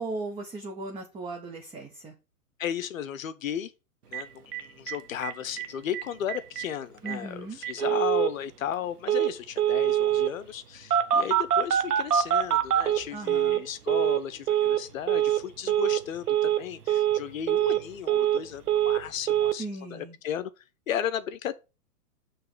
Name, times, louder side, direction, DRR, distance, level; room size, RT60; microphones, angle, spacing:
voice 1, 0.0-2.1 7.0-7.6 13.1-13.6 19.6-20.2, right 2 dB, 10° right, 0.9 m, -37 dB
voice 2, 2.6-3.7 4.1-19.7 19.9-20.5 20.9-21.5, left 9 dB, 60° left, 0.8 m, -34 dB
Telephone, 4.1-4.2 4.5-4.6 4.9-5.0 5.2-5.7 5.9-6.0 6.3-6.7 7.1-7.2 7.6-8.3 9.1-9.3 9.6-10.3 10.9-13.6 13.9-14.2 14.5-14.8 15.1-15.4 15.7-16.0 16.3-16.6 16.9-17.2 17.5-18.4 18.7-19.0 19.3-19.5, right 10 dB, 85° right, 0.9 m, -24 dB
6.7 x 3.3 x 5.8 m
hypercardioid pair, 125°, 45 cm